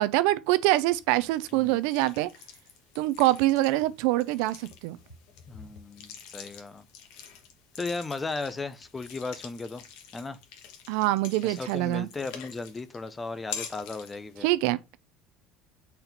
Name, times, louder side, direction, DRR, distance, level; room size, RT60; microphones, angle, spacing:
voice 1, 0.0-2.3 3.0-5.0 10.9-12.1 14.4-15.0, right 17 dB, 75° right, 0.5 m, -25 dB
sound 1, 0.9-14.4, left 7 dB, 65° left, 1.4 m, -47 dB
voice 2, 5.5-6.9 7.8-9.8 10.1-10.4 11.4-14.5, left 3 dB, 10° left, 0.5 m, -36 dB
4.4 x 4.2 x 5.1 m
cardioid pair, 175°, 0 cm